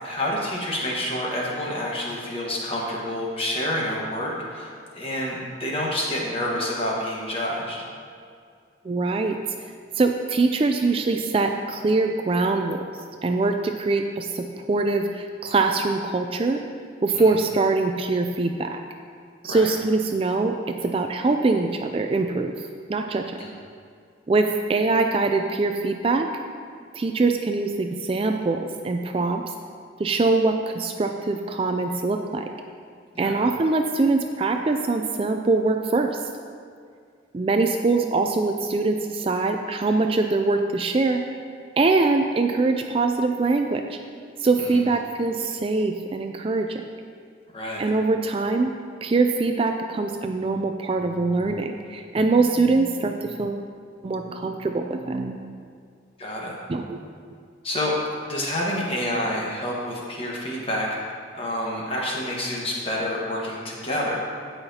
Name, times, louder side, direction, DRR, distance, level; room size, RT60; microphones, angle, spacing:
voice 1, 0.0-7.8 17.1-17.4 19.5-19.7 23.4-23.5 33.1-33.4 44.6-44.8 47.5-47.9 56.2-56.6 57.6-57.9 58.3-60.9 61.3-64.2, left 1 dB, 30° left, -3 dB, 1.4 m, -28 dB
voice 2, 8.8-9.4 10.0-12.8 13.2-16.6 17.0-18.8 19.4-22.5 22.9-23.4 24.3-26.3 26.9-29.4 30.0-32.4 33.2-36.1 37.3-41.2 41.8-44.0 44.4-46.8 47.8-48.7 49.0-53.6 54.0-55.4 56.7-57.1, right 3 dB, 30° right, 5 dB, 0.3 m, -23 dB
16.0 x 5.7 x 2.8 m, 2.2 s
head